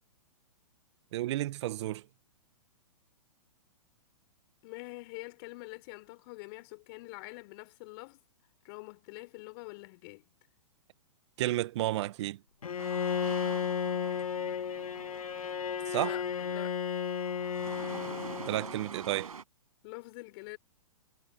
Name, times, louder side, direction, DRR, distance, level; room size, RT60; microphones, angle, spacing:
voice 1, 1.1-2.0 11.4-12.4 15.9-16.1 18.5-19.3, right 15 dB, 55° right, 1.8 m, -32 dB
voice 2, 4.6-8.2 8.6-10.2 16.0-16.9 19.8-20.6, left 26 dB, 45° left, 4.1 m, -45 dB
Bowed string instrument, 12.6-18.9, left 7 dB, 85° left, 1.7 m, -33 dB
sound 1, 12.8-19.4, right 6 dB, 85° right, 5.9 m, -46 dB
hypercardioid pair, 125°, 18 cm